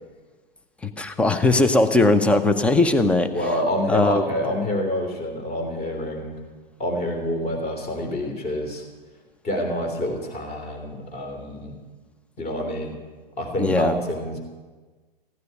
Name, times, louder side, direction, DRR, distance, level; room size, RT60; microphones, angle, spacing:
voice 1, 0.8-3.3 3.9-4.2 13.6-14.0, left 2 dB, 5° left, 8 dB, 0.7 m, -19 dB
voice 2, 3.3-6.4 6.8-8.8 9.4-11.7 12.4-13.0 13.4-14.4, left 1 dB, 20° left, 3 dB, 3.2 m, -27 dB
15.5 x 9.5 x 9.4 m, 1.4 s
figure-of-eight pair, 115°, 29 cm